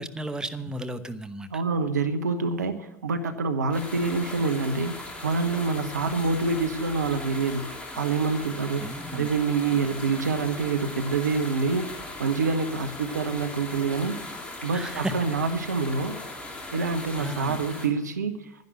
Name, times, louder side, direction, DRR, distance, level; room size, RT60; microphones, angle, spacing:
voice 1, 0.0-1.6 8.8-9.3 14.7-15.4 17.2-17.6, right 1 dB, 10° right, 9 dB, 0.9 m, -34 dB
voice 2, 1.5-7.6 7.9-8.9 9.1-14.2 14.6-16.2 16.7-18.4, right 4 dB, 80° right, 9 dB, 1.1 m, -26 dB
sound 1, 3.7-17.9, left 2 dB, 10° left, 2.8 m, -39 dB
12.0 x 10.5 x 6.9 m, 0.87 s
figure-of-eight pair, 80°, 9 cm